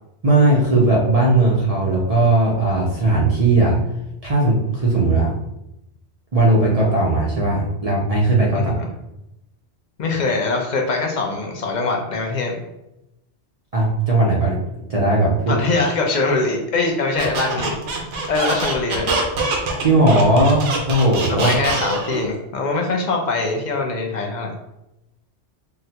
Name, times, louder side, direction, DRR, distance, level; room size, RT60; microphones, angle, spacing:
voice 1, 0.2-3.8 4.2-5.3 6.3-8.7 13.7-14.6 14.9-15.5 19.8-21.5, right 2 dB, 45° right, -4 dB, 0.5 m, -17 dB
voice 2, 8.5-8.9 10.0-12.6 15.5-17.8 18.3-19.1 21.3-24.5, left 3 dB, 55° left, 1 dB, 0.5 m, -22 dB
Squeak, 17.2-22.2, right 3 dB, 80° right, 1.0 m, -24 dB
3.7 x 2.2 x 2.8 m, 0.89 s
omnidirectional pair, 1.2 m